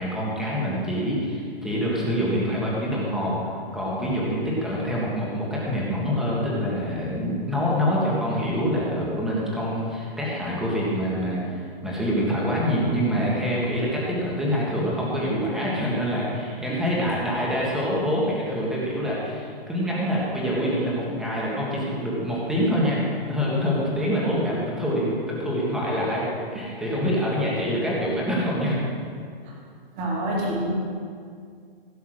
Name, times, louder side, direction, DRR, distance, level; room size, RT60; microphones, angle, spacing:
voice 1, 0.0-23.0 23.3-28.8, equal, ahead, -6 dB, 1.7 m, -25 dB
voice 2, 30.0-30.7, right 1 dB, 20° right, -3 dB, 2.5 m, -27 dB
16.0 x 7.0 x 6.4 m, 2.2 s
hypercardioid pair, 170°, 30 cm